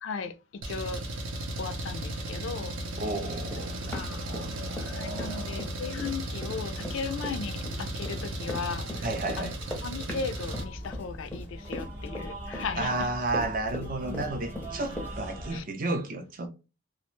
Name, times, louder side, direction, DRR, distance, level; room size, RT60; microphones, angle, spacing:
voice 1, 0.0-1.0 1.6-2.7 3.9-4.2 4.8-9.1 9.4-9.5 9.8-13.1 13.8-14.2 15.5-15.6, left 5 dB, 70° left, 0.4 m, -37 dB
Engine, 0.6-10.6, right 1 dB, 80° right, 0.7 m, -35 dB
voice 2, 3.0-5.7 9.0-9.6 12.8-16.5, right 2 dB, 40° right, 0.5 m, -33 dB
Run, 3.5-4.9 5.2-15.1, left 1 dB, 10° left, 0.6 m, -39 dB
sound 1, 10.6-15.6, right 1 dB, 10° right, 0.8 m, -40 dB
2.4 x 2.1 x 3.0 m
head